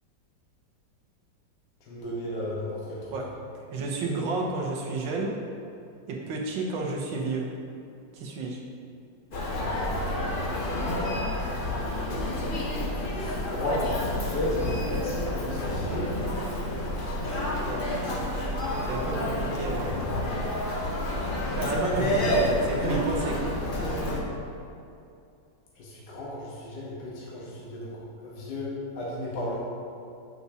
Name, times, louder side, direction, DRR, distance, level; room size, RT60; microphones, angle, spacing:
voice 1, 1.9-3.0 9.6-10.8 13.1-16.1 25.8-29.6, left 1 dB, 70° left, -6 dB, 1.6 m, -34 dB
voice 2, 3.7-5.3 6.1-7.5 8.1-8.6 17.6-17.8 18.9-20.0 21.6-23.5, right 3 dB, 85° right, -1 dB, 1.6 m, -31 dB
Human voice, 9.3-24.2, left 1 dB, 50° left, 0.6 m, -29 dB
8.4 x 5.9 x 2.7 m, 2.5 s
omnidirectional pair, 2.0 m